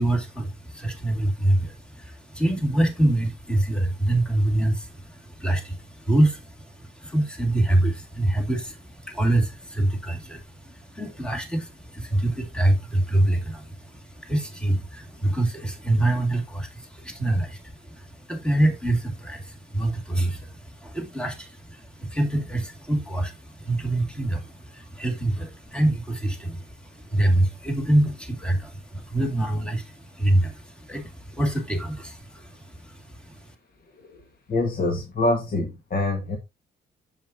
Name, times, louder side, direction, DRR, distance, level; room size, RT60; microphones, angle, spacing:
voice 1, 0.0-33.5, right 1 dB, 5° left, 2.2 m, -25 dB
voice 2, 34.5-36.4, left 2 dB, 50° left, 1.6 m, -25 dB
7.4 x 7.3 x 2.8 m
cardioid pair, 90°, 20 cm